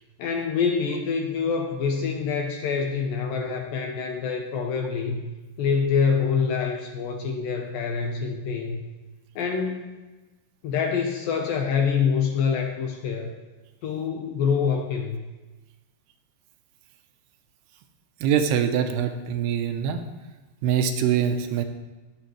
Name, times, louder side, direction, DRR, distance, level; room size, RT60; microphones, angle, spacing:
voice 1, 0.2-5.3 5.6-8.8 9.4-10.0 10.6-13.3 13.8-15.3, left 6 dB, 75° left, 3 dB, 2.1 m, -26 dB
voice 2, 18.2-20.0 20.6-21.6, right 8 dB, 85° right, 7 dB, 2.7 m, -24 dB
19.5 x 6.9 x 3.2 m, 1.2 s
omnidirectional pair, 4.9 m